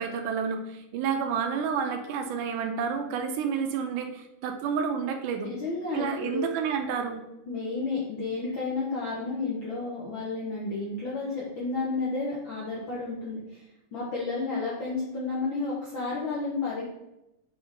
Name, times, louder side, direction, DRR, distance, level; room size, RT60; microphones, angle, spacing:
voice 1, 0.0-5.5 5.9-7.2, right 6 dB, 85° right, 5 dB, 2.2 m, -30 dB
voice 2, 5.4-6.5 7.5-13.6 13.9-16.8, left 3 dB, 65° left, -5 dB, 1.2 m, -31 dB
7.6 x 3.4 x 3.7 m, 0.90 s
omnidirectional pair, 3.5 m